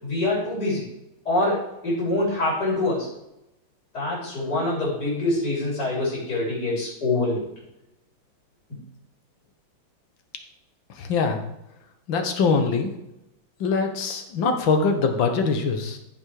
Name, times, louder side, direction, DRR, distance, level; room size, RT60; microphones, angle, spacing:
voice 1, 0.0-0.9 1.3-3.1 3.9-7.4, left 2 dB, 50° left, -7 dB, 4.3 m, -25 dB
voice 2, 11.0-11.4 12.1-12.9 13.6-16.0, left 4 dB, 70° left, 5 dB, 1.9 m, -23 dB
14.0 x 5.4 x 4.8 m, 0.87 s
omnidirectional pair, 2.2 m